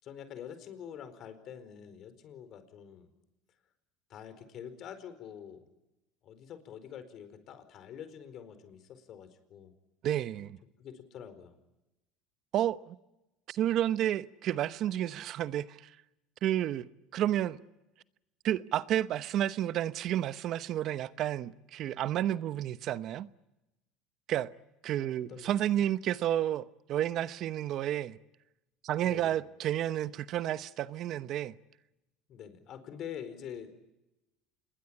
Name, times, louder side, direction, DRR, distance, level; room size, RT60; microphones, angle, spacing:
voice 1, 0.0-3.1 4.1-5.6 6.2-9.7 10.8-11.6 25.0-25.8 29.0-29.4 32.3-33.8, left 8 dB, 50° left, 4.6 m, -46 dB
voice 2, 10.0-10.6 12.5-13.0 13.5-16.0 16.4-17.6 18.4-23.3 24.3-24.5 24.8-28.2 28.8-31.5, right 12 dB, 50° right, 0.9 m, -31 dB
26.5 x 21.5 x 9.9 m
supercardioid pair, 115°, 0 cm